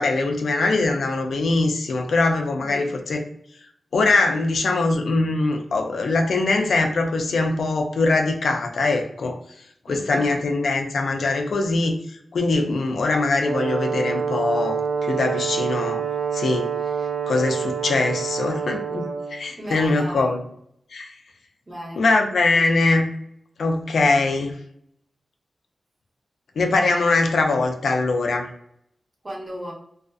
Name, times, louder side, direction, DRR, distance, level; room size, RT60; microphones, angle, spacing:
voice 1, 0.0-3.2 3.9-9.4 9.9-16.0 16.3-16.7 17.3-20.4 20.9-21.1 22.0-23.1 23.6-24.5 26.6-28.5, left 3 dB, 85° left, 4 dB, 0.4 m, -22 dB
voice 2, 9.9-10.4 19.6-20.3 21.7-22.0 29.2-29.7, equal, 35° right, -1 dB, 0.8 m, -35 dB
Brass instrument, 13.4-19.4, right 6 dB, 90° right, 0.3 m, -27 dB
2.4 x 2.4 x 2.2 m, 0.70 s
wide cardioid pair, 75°, 0 cm